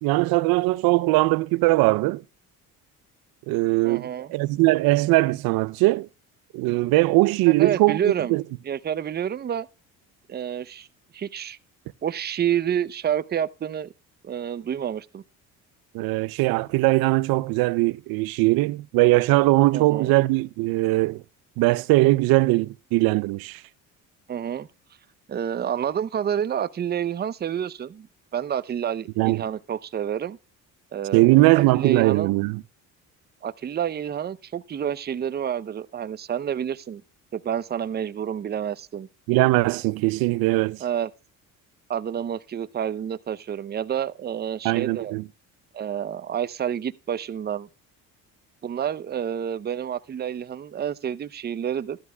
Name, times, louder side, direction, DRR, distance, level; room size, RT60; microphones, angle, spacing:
voice 1, 0.0-2.2 3.5-6.1 6.5-8.4 15.9-21.2 21.6-23.6 29.2-29.5 31.1-32.6 39.3-40.8 44.6-45.2, right 21 dB, 80° right, 0.5 m, -20 dB
voice 2, 3.8-4.3 7.5-8.4 8.6-9.7 10.3-10.9 11.1-11.6 12.0-13.9 14.2-15.2 19.7-20.1 24.3-24.7 25.3-28.1 28.3-30.4 30.9-32.3 33.4-37.0 37.3-39.1 40.8-41.1 41.9-45.1 45.7-47.7 48.6-52.0, right 9 dB, 30° right, 0.6 m, -29 dB
12.5 x 12.0 x 2.2 m
cardioid pair, 90°, 35 cm